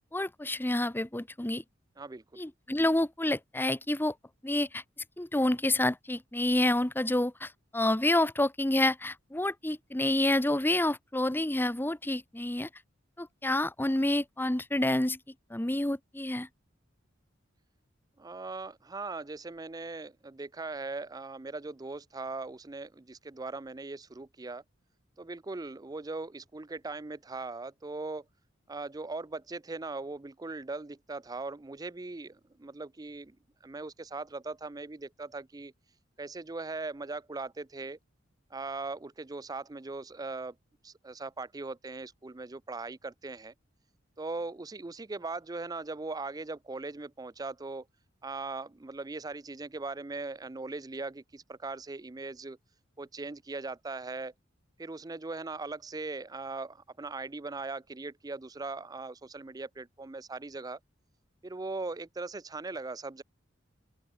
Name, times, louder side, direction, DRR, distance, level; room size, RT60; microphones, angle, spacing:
voice 1, 0.1-1.6 2.4-4.1 4.4-4.8 5.2-12.7 13.2-15.2 15.5-16.5, left 1 dB, 10° left, 0.8 m, -28 dB
voice 2, 2.0-2.4 18.2-24.6 25.2-28.2 28.7-33.4 33.6-35.7 36.2-38.0 38.5-40.6 40.8-43.5 44.2-47.9 48.2-52.6 53.0-54.3 54.8-60.8 61.4-63.2, right 3 dB, 20° right, 0.5 m, -39 dB
open air
head